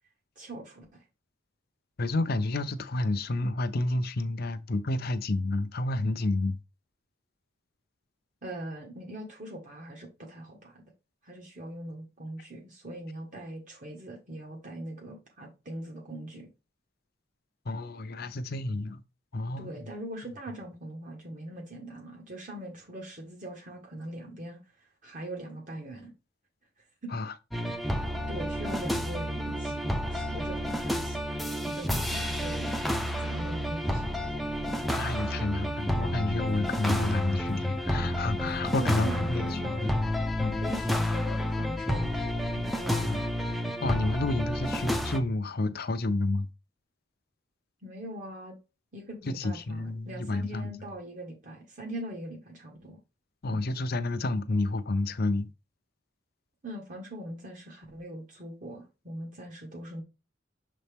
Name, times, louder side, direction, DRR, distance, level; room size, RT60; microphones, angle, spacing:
voice 1, 0.3-1.1 8.4-10.8 11.2-16.5 19.6-26.1 27.0-27.1 27.8-32.7 33.2-34.1 38.8-39.9 40.6-42.2 42.6-43.3 47.8-48.6 48.9-53.0 53.5-53.6 56.6-60.0, right 1 dB, 40° right, 1.5 m, -41 dB
voice 2, 2.0-6.6 17.7-19.0 19.3-19.7 27.1-27.3 35.0-39.9 40.4-40.6 42.9-43.2 43.8-46.5 49.3-50.7 53.4-55.5, left 2 dB, 50° left, 0.6 m, -30 dB
sound 1, 27.5-45.2, equal, ahead, 0.6 m, -30 dB
6.8 x 4.2 x 3.5 m
head